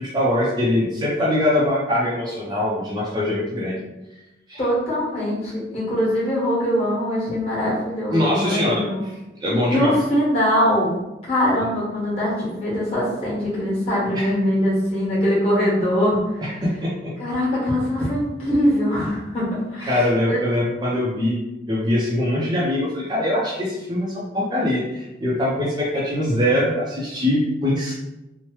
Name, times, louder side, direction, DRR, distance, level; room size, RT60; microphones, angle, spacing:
voice 1, 0.0-3.8 4.5-4.6 8.1-8.8 9.4-10.0 14.1-14.3 16.4-17.1 19.9-21.4 21.7-27.9, left 1 dB, 25° right, -5 dB, 0.5 m, -22 dB
voice 2, 4.6-9.0 9.7-10.9 11.2-16.2 17.2-20.0 20.3-20.4, equal, 35° left, -8 dB, 1.4 m, -22 dB
3.0 x 2.1 x 3.0 m, 0.97 s
head